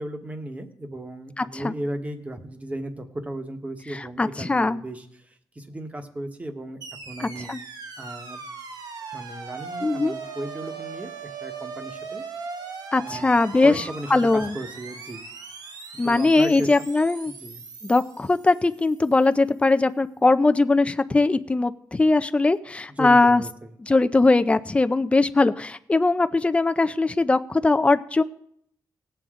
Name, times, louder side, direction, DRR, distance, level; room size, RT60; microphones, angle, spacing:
voice 1, 0.0-7.5 8.0-8.4 9.1-11.1 11.4-12.2 13.0-13.4 13.6-15.3 16.0-16.8 17.3-17.6 22.9-23.7, right 1 dB, 20° right, 6 dB, 1.3 m, -35 dB
voice 2, 1.4-1.7 4.2-4.8 7.2-7.6 9.8-10.1 12.9-13.8 14.1-14.5 16.0-17.3 17.8-23.4 23.8-28.2, left 3 dB, 15° left, 10 dB, 0.5 m, -20 dB
sound 1, 6.8-19.1, right 5 dB, 70° right, 1.3 m, -39 dB
19.0 x 7.8 x 3.8 m, 0.69 s
wide cardioid pair, 115°, 7 cm